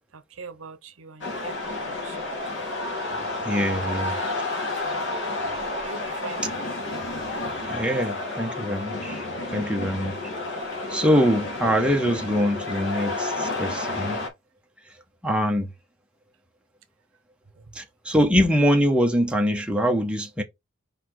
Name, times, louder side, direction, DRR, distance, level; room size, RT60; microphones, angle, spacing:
voice 1, 0.1-2.6 3.5-4.0 4.8-6.8, right 5 dB, 75° right, 0.8 m, -43 dB
sound 1, 1.2-14.3, left 2 dB, 60° left, 2.8 m, -30 dB
voice 2, 3.4-4.2 7.7-9.2 9.5-10.1 10.9-14.2 15.2-15.7 17.7-20.4, equal, 5° right, 1.0 m, -23 dB
5.1 x 4.2 x 4.5 m
head